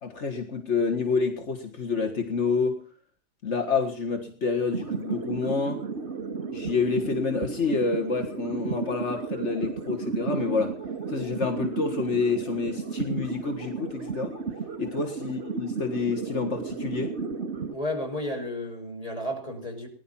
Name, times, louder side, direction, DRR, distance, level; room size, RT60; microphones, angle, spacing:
voice 1, 0.0-2.8 3.4-5.8 6.5-10.8 11.1-14.3 14.8-17.1, left 4 dB, 75° left, 6 dB, 2.1 m, -28 dB
sound 1, 4.7-17.7, right 5 dB, 65° right, 2.6 m, -33 dB
voice 2, 17.7-19.9, left 1 dB, 30° left, 2 dB, 6.0 m, -32 dB
20.5 x 11.5 x 5.6 m, 0.42 s
omnidirectional pair, 1.2 m